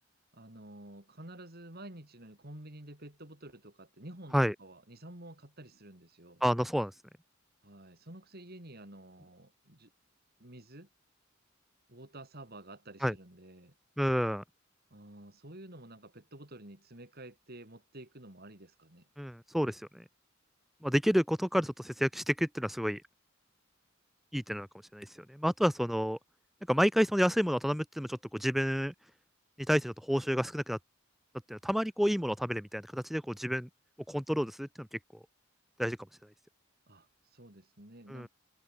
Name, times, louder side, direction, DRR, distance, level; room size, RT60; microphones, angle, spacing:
voice 1, 0.3-6.4 7.6-9.9 10.4-10.9 11.9-13.7 14.9-19.1 36.9-38.3, right 1 dB, 50° right, 4.9 m, -50 dB
voice 2, 6.4-7.0 13.0-13.1 14.0-14.4 19.2-20.0 20.8-23.0 24.3-24.7 24.9-26.2 26.7-28.9 29.6-30.8 31.5-33.7 34.1-35.0 35.8-36.0 38.1-38.3, equal, ahead, 1.1 m, -30 dB
head